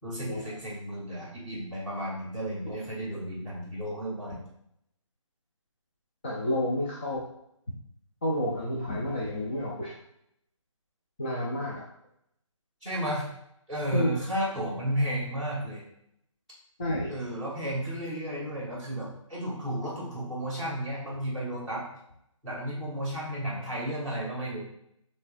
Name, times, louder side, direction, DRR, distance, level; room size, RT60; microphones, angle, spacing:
voice 1, 0.0-4.4 12.8-13.2 13.7-15.8 17.1-21.8 22.4-24.6, right 1 dB, 5° left, -13 dB, 1.4 m, -33 dB
voice 2, 6.2-7.2 8.2-9.9 11.2-11.8 13.9-14.2 16.8-17.1, left 1 dB, 20° left, -4 dB, 0.4 m, -30 dB
6.0 x 3.2 x 2.5 m, 0.78 s
hypercardioid pair, 170°, 17 cm